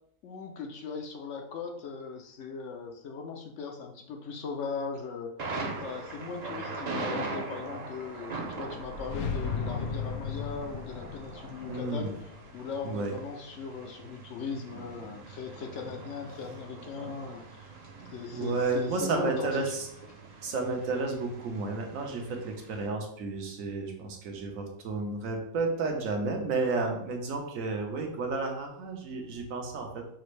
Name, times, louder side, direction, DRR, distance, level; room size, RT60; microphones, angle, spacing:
voice 1, 0.2-5.5 5.8-12.1 12.5-17.7 18.1-19.6, left 5 dB, 65° left, 3 dB, 0.9 m, -39 dB
Thunder, 5.4-22.9, right 3 dB, 40° right, 0.6 m, -41 dB
sound 1, 8.5-13.5, left 5 dB, 90° left, 1.1 m, -37 dB
voice 2, 11.7-12.1 12.8-13.1 18.3-19.9 20.4-30.1, right 3 dB, 70° right, 2 dB, 1.2 m, -32 dB
6.2 x 2.5 x 3.1 m, 0.69 s
omnidirectional pair, 1.5 m